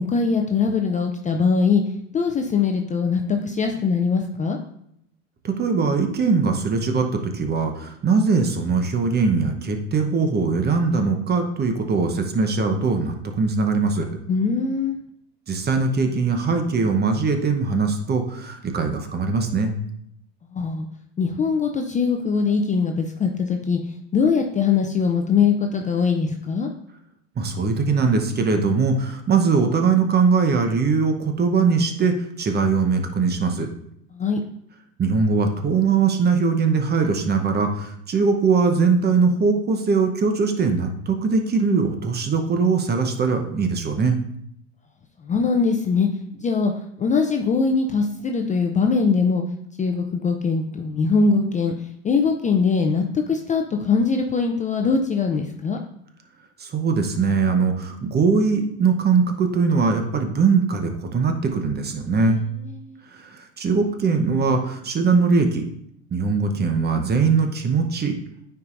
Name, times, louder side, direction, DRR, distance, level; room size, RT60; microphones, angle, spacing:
voice 1, 0.0-1.8 2.1-4.6 14.3-15.0 20.5-20.9 21.2-26.7 34.1-34.4 45.2-46.1 46.3-46.7 47.0-49.4 49.8-51.7 52.0-55.8 62.3-63.0, left 5 dB, 20° left, 4 dB, 0.5 m, -22 dB
voice 2, 5.4-14.0 15.5-19.7 27.4-33.7 35.0-44.2 56.6-62.4 63.2-65.6 66.1-68.1, right 4 dB, 25° right, 5 dB, 0.9 m, -21 dB
9.4 x 4.7 x 2.5 m, 0.73 s
hypercardioid pair, 95°, 38 cm